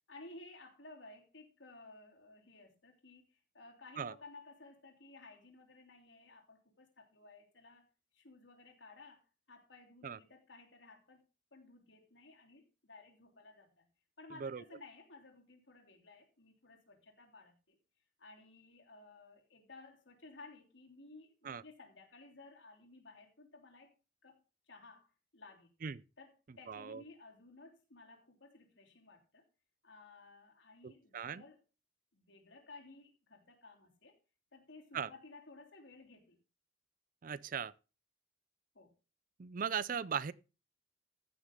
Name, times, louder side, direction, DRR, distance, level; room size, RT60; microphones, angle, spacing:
voice 1, 0.1-7.9 8.1-11.2 11.5-13.9 14.2-17.8 18.2-23.9 24.2-25.1 25.3-25.7 26.2-29.5 29.8-31.6 32.1-34.2 34.5-36.4 38.7-38.9, left 3 dB, 75° left, 3.2 m, -56 dB
voice 2, 26.7-27.0 30.8-31.4 34.9-35.1 37.2-37.7 39.4-40.3, right 7 dB, 45° right, 0.4 m, -38 dB
15.5 x 6.5 x 3.7 m
head